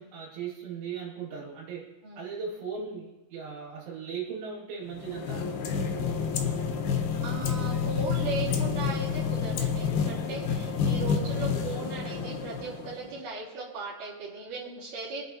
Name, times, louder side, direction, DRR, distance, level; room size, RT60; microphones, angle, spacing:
voice 1, 0.0-1.9 2.2-5.5, right 6 dB, 80° right, -5 dB, 4.7 m, -38 dB
sound 1, 4.9-13.2, left 6 dB, 70° left, 2.6 m, -29 dB
voice 2, 7.2-15.2, right 3 dB, 45° right, -9 dB, 4.9 m, -37 dB
25.0 x 8.4 x 2.9 m, 1.1 s
omnidirectional pair, 5.4 m